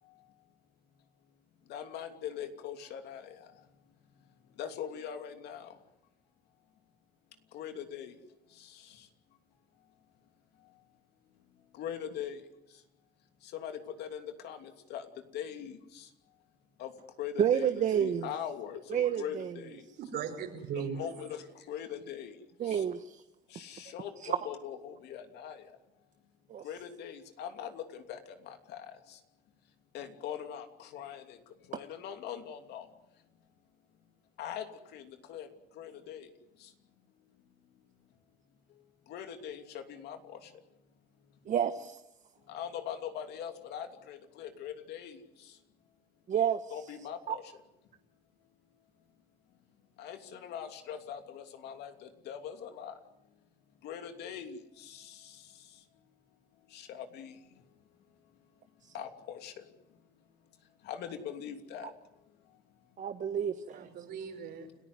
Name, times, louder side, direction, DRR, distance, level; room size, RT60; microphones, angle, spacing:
voice 1, 1.7-3.5 4.6-5.7 7.5-8.2 8.6-9.1 11.7-12.4 13.4-15.1 15.3-16.1 16.8-16.9 17.2-19.8 20.7-22.3 22.6-22.8 23.5-25.6 26.6-28.2 28.4-29.2 29.9-31.4 31.7-32.9 34.4-34.7 34.9-35.5 35.8-36.3 36.6-36.7 39.1-40.5 42.5-45.2 46.7-47.4 50.0-52.9 53.8-55.4 56.7-57.3 58.9-59.6 60.8-61.9, left 9 dB, 80° left, 6 dB, 2.9 m, -42 dB
voice 2, 17.4-18.3 18.9-19.5 22.6-23.2 24.2-24.4 26.5-26.6 41.5-42.0 46.3-46.6 47.3-47.4 63.0-63.9, right 9 dB, 45° right, 8 dB, 1.1 m, -29 dB
voice 3, 20.0-21.1 63.7-64.7, right 7 dB, 75° right, 6 dB, 4.9 m, -38 dB
29.5 x 14.5 x 9.7 m, 0.89 s
cardioid pair, 110°, 17 cm